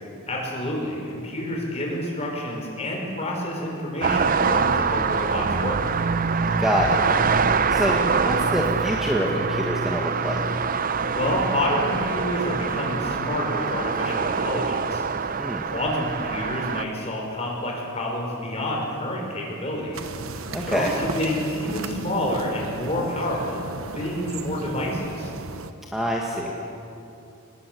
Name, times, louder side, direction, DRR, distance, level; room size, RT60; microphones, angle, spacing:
voice 1, 0.3-5.8 11.2-20.0 20.7-23.6 23.9-25.3, left 1 dB, 30° left, -1 dB, 5.7 m, -28 dB
sound 1, 4.0-16.8, right 5 dB, 40° right, 0.6 m, -24 dB
voice 2, 6.6-7.0 7.7-10.4 15.4-15.6 20.5-20.9 25.9-26.5, equal, ahead, -2 dB, 1.9 m, -26 dB
sound 2, 19.9-25.7, right 3 dB, 65° right, 1.1 m, -35 dB
24.5 x 20.5 x 8.5 m, 2.8 s
head